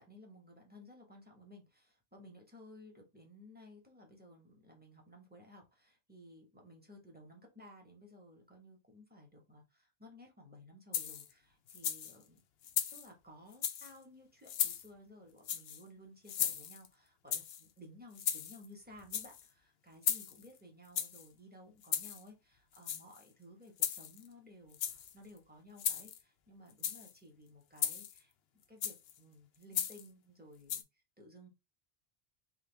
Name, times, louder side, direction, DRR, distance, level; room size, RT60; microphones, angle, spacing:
voice 1, 0.0-12.4 12.9-28.3 28.7-30.8 31.2-31.5, left 1 dB, 10° right, 1.1 m, -57 dB
sound 1, 10.9-11.3 11.7-12.2 12.6-13.1 13.5-13.9 14.5-14.9 15.4-15.8 16.3-16.9 17.3-17.6 18.2-18.7 19.0-19.4 20.0-20.5 21.0-21.3 21.8-22.2 22.8-23.2 23.8-24.3 24.7-25.1 25.8-26.2 26.7-27.1 27.8-28.2 28.8-29.1 29.7-30.1 30.7-30.8, left 9 dB, 75° left, 0.8 m, -36 dB
3.7 x 2.7 x 3.3 m
omnidirectional pair, 1.1 m